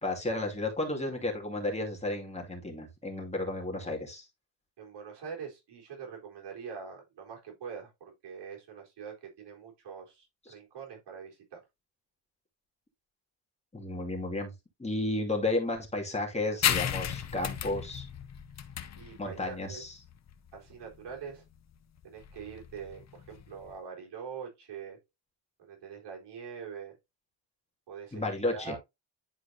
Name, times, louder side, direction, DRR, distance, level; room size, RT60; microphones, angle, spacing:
voice 1, 0.0-4.3 13.7-14.5 14.8-18.1 19.2-19.9 28.1-28.8, left 2 dB, 15° left, 2.4 m, -33 dB
voice 2, 4.8-11.6 19.0-19.8 20.5-21.4 22.0-25.0 25.6-26.9 27.9-28.2 28.5-28.8, right 6 dB, 60° right, 4.0 m, -44 dB
sound 1, 16.6-23.7, left 9 dB, 35° left, 0.8 m, -35 dB
10.5 x 4.5 x 2.8 m
cardioid pair, 120°, 46 cm